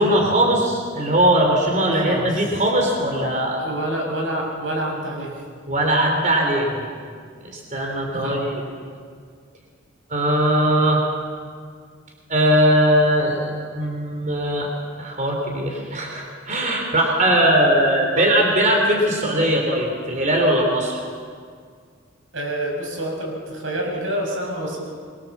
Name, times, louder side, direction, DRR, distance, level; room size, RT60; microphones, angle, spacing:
voice 1, 0.0-3.6 5.7-6.8 7.4-8.6 10.1-11.0 12.3-14.7 15.0-21.0, right 1 dB, 40° right, 1 dB, 3.7 m, -20 dB
voice 2, 3.6-5.4 8.1-8.4 18.1-18.3 22.3-24.9, right 1 dB, 85° right, 0 dB, 6.6 m, -27 dB
23.5 x 23.0 x 7.4 m, 2.1 s
head